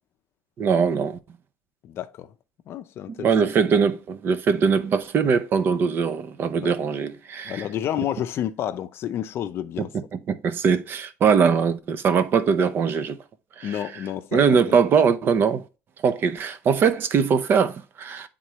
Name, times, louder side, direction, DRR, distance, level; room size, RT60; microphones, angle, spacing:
voice 1, 0.6-1.2 3.1-7.7 9.9-13.2 13.6-13.7 14.3-15.6 16.0-18.3, right 6 dB, 40° right, 0.6 m, -21 dB
voice 2, 1.8-2.3 2.7-3.3 6.6-6.7 7.4-9.9 13.6-14.8, left 11 dB, 45° left, 0.5 m, -30 dB
8.7 x 3.7 x 3.0 m
cardioid pair, 145°, 6 cm